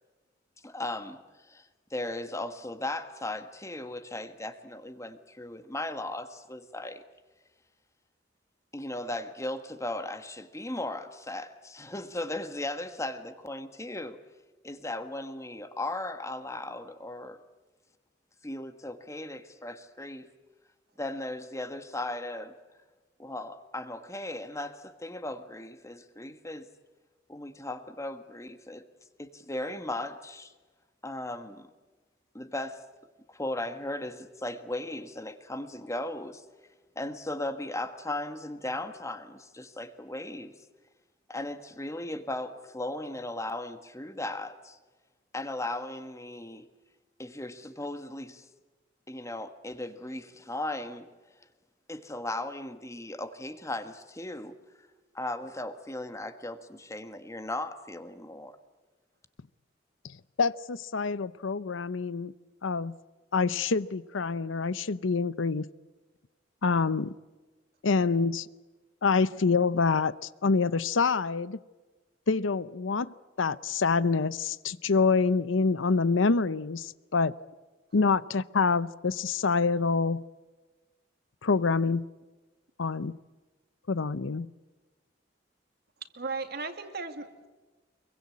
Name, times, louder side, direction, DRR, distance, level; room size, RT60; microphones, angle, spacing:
voice 1, 0.6-7.0 8.7-14.2 14.6-17.4 18.4-20.3 21.0-22.6 23.2-26.7 27.3-28.9 29.2-30.5 31.0-31.7 32.3-32.8 33.3-36.4 36.9-40.5 41.3-44.8 45.3-46.7 47.2-48.5 49.1-51.1 51.9-54.6 55.1-58.6, left 1 dB, 15° left, 1.5 m, -37 dB
voice 2, 60.0-62.3 62.6-62.9 63.3-65.7 66.6-67.1 67.8-68.5 69.0-71.6 72.3-77.3 77.9-80.2 81.4-82.1 82.8-83.1 83.9-84.5, left 4 dB, 85° left, 0.7 m, -26 dB
voice 3, 86.1-87.5, right 4 dB, 55° right, 2.4 m, -36 dB
25.0 x 23.0 x 8.5 m
head